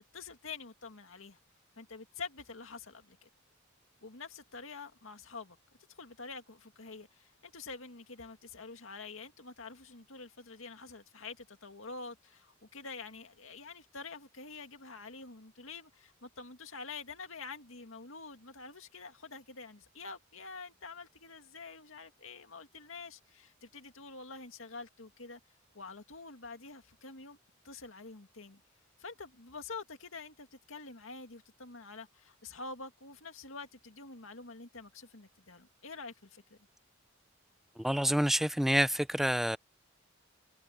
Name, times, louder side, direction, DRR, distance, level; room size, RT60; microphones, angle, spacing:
voice 1, 0.1-1.4 1.8-3.3 4.0-5.6 6.0-25.4 25.7-27.4 27.6-28.6 29.0-36.4, left 4 dB, 75° left, 2.3 m, -47 dB
voice 2, 37.8-39.6, equal, ahead, 0.4 m, -28 dB
head